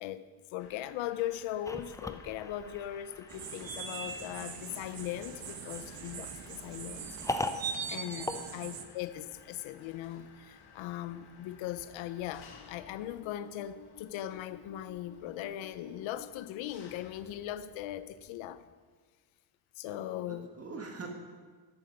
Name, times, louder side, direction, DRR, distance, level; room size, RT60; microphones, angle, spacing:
voice 1, 0.0-7.2 7.9-18.7 19.8-20.5, left 12 dB, 85° left, 0.7 m, -39 dB
Mechanisms, 0.6-18.6, left 6 dB, 55° left, 1.5 m, -56 dB
sound 1, 1.6-9.3, left 2 dB, 5° left, 0.5 m, -41 dB
sound 2, 3.3-8.8, right 6 dB, 50° right, 1.2 m, -41 dB
voice 2, 8.3-8.7 19.8-21.1, right 4 dB, 30° right, 1.6 m, -45 dB
11.5 x 7.9 x 5.2 m
cardioid pair, 80°, 45 cm